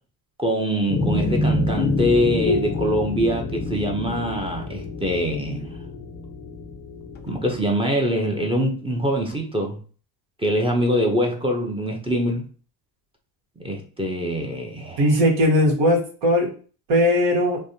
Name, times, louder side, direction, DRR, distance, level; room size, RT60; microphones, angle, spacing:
voice 1, 0.4-5.7 7.2-9.8 10.4-12.4 13.6-15.0, equal, 10° right, 0.7 m, -24 dB
sound 1, 0.9-7.5, left 2 dB, 25° left, 0.4 m, -26 dB
voice 2, 15.0-16.5 16.9-17.6, left 1 dB, 65° right, 1.4 m, -18 dB
3.3 x 2.1 x 2.7 m
supercardioid pair, 85°, 48 cm